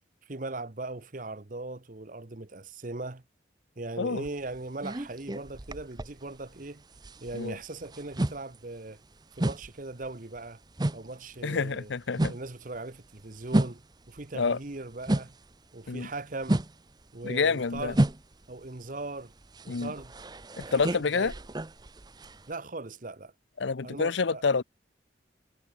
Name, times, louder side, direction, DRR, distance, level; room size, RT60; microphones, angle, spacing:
voice 1, 0.2-3.2 3.8-6.8 7.2-9.0 9.4-10.6 10.9-11.9 12.3-15.3 15.7-16.6 17.1-18.0 18.5-19.3 19.6-20.1 20.6-21.3 22.5-23.3 23.8-24.4, right 2 dB, 45° right, 1.1 m, -39 dB
sound 1, 4.2-6.7 6.9-15.5 15.9-22.5, right 1 dB, 20° right, 0.7 m, -32 dB
voice 2, 11.4-12.3 14.3-14.6 15.9-16.1 17.2-17.9 19.7-19.9 20.7-21.3 23.6-24.6, left 4 dB, 80° left, 0.7 m, -28 dB
head